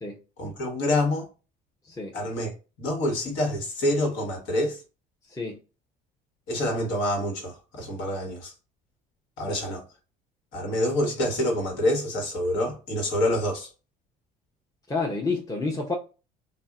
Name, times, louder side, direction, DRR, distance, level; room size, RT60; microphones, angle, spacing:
voice 1, 0.4-1.3 2.1-2.5 2.8-4.8 6.5-8.5 9.4-9.8 10.5-13.7, left 1 dB, 70° left, 1.3 m, -27 dB
voice 2, 14.9-15.9, left 3 dB, 15° left, 0.7 m, -29 dB
2.6 x 2.1 x 3.5 m
supercardioid pair, 80°, 20 cm